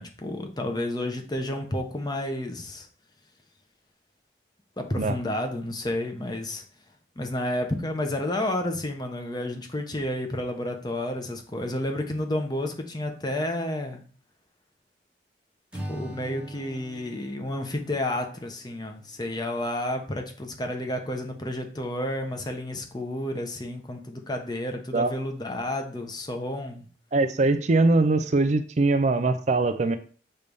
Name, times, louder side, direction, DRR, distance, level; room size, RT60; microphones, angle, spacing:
voice 1, 0.0-2.9 4.8-6.6 7.2-14.0 15.9-26.9, left 1 dB, 25° left, 4 dB, 1.0 m, -31 dB
Acoustic guitar / Strum, 15.7-19.0, right 1 dB, 5° right, 1.1 m, -41 dB
voice 2, 27.1-30.0, right 3 dB, 40° right, 10 dB, 0.4 m, -22 dB
6.7 x 3.3 x 5.3 m, 0.41 s
head